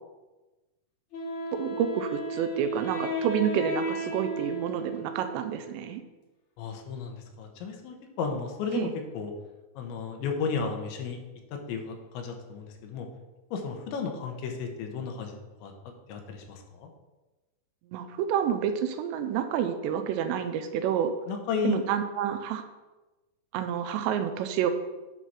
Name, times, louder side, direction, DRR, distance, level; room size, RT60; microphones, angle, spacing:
Wind instrument woodwind instrument, 1.1-5.9, right 1 dB, 60° left, 1.4 m, -34 dB
voice 1, 1.5-6.0 8.7-8.9 17.9-21.1 21.6-22.6 23.5-24.7, right 8 dB, 85° right, 8 dB, 2.7 m, -29 dB
voice 2, 6.6-9.3 9.8-11.2 11.5-13.1 13.5-15.7 16.1-16.9 21.3-21.8, left 5 dB, 85° left, 3 dB, 3.3 m, -33 dB
9.1 x 4.7 x 5.8 m, 1.1 s
omnidirectional pair, 5.2 m